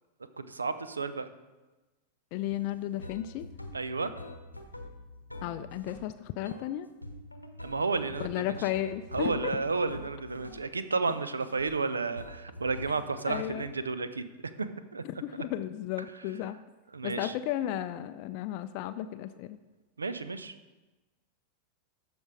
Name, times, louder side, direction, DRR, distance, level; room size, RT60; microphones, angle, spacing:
voice 1, 0.4-1.3 3.7-4.1 7.6-8.6 9.1-14.2 14.6-15.0 16.9-17.3 20.0-20.5, right 4 dB, 75° right, 12 dB, 0.6 m, -32 dB
voice 2, 2.3-3.5 5.4-6.9 8.2-9.5 13.3-13.7 15.0-16.6 17.0-19.6, left 13 dB, 45° left, 10 dB, 0.4 m, -34 dB
sound 1, 2.5-2.6 3.0-6.1 6.4-6.7 7.0-10.7 11.0-11.7 12.2-13.4, left 1 dB, 90° left, 0.9 m, -45 dB
13.5 x 5.3 x 4.8 m, 1.2 s
figure-of-eight pair, 90°, 0 cm